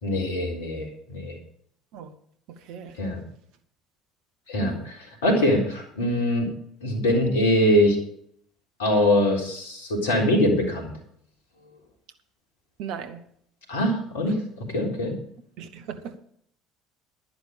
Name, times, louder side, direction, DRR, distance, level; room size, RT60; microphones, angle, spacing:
voice 1, 0.0-1.3 3.0-3.2 4.5-6.5 6.8-8.0 8.8-10.9 13.7-15.1, left 1 dB, 75° left, 1 dB, 3.7 m, -23 dB
voice 2, 2.5-2.9 4.6-4.9 12.8-13.2 15.6-16.2, right 7 dB, 60° right, 9 dB, 1.5 m, -37 dB
11.5 x 10.5 x 5.3 m, 0.65 s
figure-of-eight pair, 60°, 0 cm